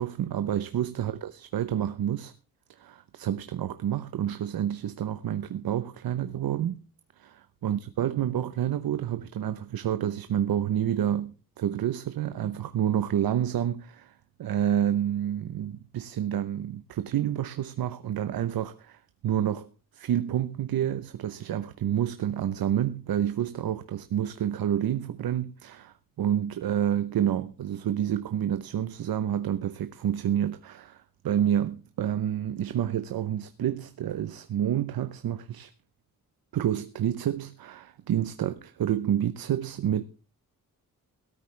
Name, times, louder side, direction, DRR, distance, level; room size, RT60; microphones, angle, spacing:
voice 1, 0.0-2.3 2.8-6.8 7.2-14.1 14.4-19.7 19.9-35.7 36.5-40.0, right 10 dB, 85° right, 0.9 m, -29 dB
17.0 x 13.0 x 3.3 m
wide cardioid pair, 155°, 35 cm